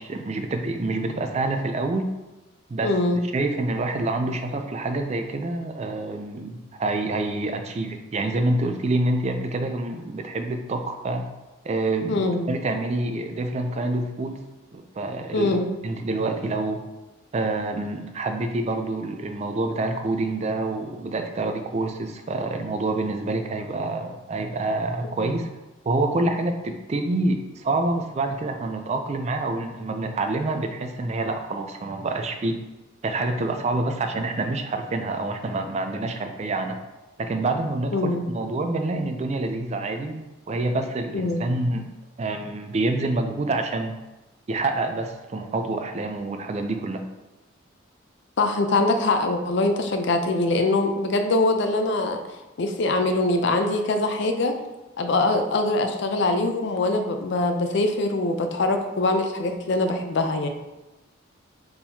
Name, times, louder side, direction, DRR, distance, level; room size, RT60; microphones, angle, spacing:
voice 1, 0.0-2.1 2.7-2.9 3.3-11.2 11.6-14.4 14.7-15.6 15.8-16.8 17.3-25.5 25.8-32.6 33.0-36.8 37.2-41.9 42.2-44.0 44.5-47.0, right 2 dB, 35° right, 6 dB, 0.3 m, -27 dB
voice 2, 2.8-3.2 12.1-12.5 15.3-15.7 37.9-38.3 41.1-41.5 48.4-52.2 52.6-54.6 55.0-60.5, left 2 dB, 60° left, 6 dB, 0.4 m, -23 dB
4.5 x 3.7 x 2.7 m, 1.1 s
head